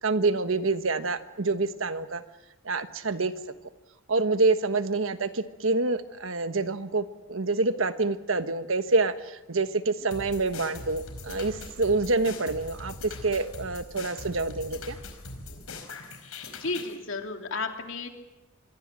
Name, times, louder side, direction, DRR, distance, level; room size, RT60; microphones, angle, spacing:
voice 1, 0.0-2.2 2.6-3.3 4.1-12.9 13.2-15.0, right 3 dB, 70° right, 10 dB, 1.3 m, -27 dB
sound 1, 10.1-17.0, left 3 dB, 90° left, 4.8 m, -41 dB
voice 2, 16.5-18.1, left 3 dB, 65° left, 4 dB, 3.1 m, -33 dB
26.0 x 22.5 x 7.6 m, 1.1 s
head